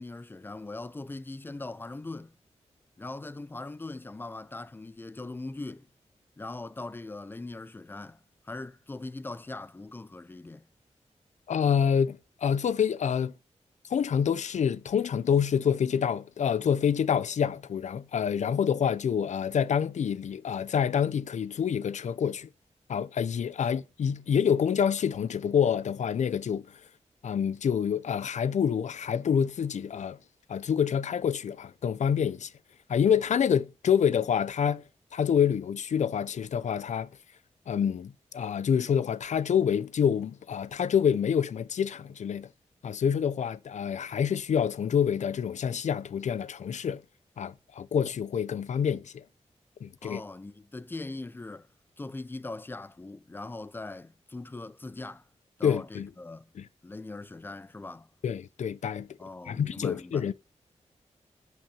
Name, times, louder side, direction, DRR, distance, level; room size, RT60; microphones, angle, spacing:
voice 1, 0.0-2.3 3.0-5.9 6.4-8.2 8.4-10.6 50.0-51.7 52.0-55.2 55.6-56.4 56.8-58.1 59.2-60.3, left 2 dB, 15° left, 0.5 m, -40 dB
voice 2, 11.5-13.3 13.9-22.5 22.9-26.8 27.2-30.2 30.5-32.5 32.9-34.8 35.1-37.1 37.7-42.5 42.8-47.0 47.4-49.2 49.8-50.2 55.6-56.1 56.6-56.7 58.2-59.1 59.5-60.3, left 7 dB, 80° left, 0.6 m, -27 dB
11.0 x 6.1 x 6.9 m
wide cardioid pair, 175°, 12 cm